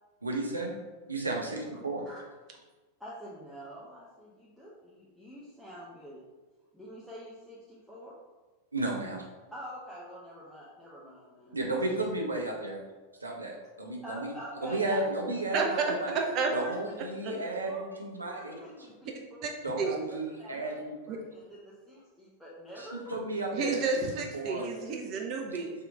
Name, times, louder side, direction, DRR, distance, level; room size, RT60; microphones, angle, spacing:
voice 1, 0.2-0.7 1.1-2.1 8.7-9.3 11.5-12.8 13.2-14.3 14.6-16.1 16.5-18.5 19.6-21.0 22.8-23.8 24.3-24.7, right 2 dB, 80° right, 0 dB, 0.6 m, -33 dB
voice 2, 3.0-6.2 6.7-8.1 9.5-11.8 14.0-15.0 15.5-17.8 18.3-19.4 19.8-20.7 21.1-23.3, equal, ahead, -8 dB, 0.7 m, -45 dB
voice 3, 15.5-15.8 16.3-16.5 17.2-17.3 19.4-19.5 19.8-20.0 21.1-21.2 23.5-25.7, right 5 dB, 40° right, 2 dB, 0.5 m, -31 dB
3.3 x 2.9 x 3.6 m, 1.3 s
figure-of-eight pair, 90°, 0 cm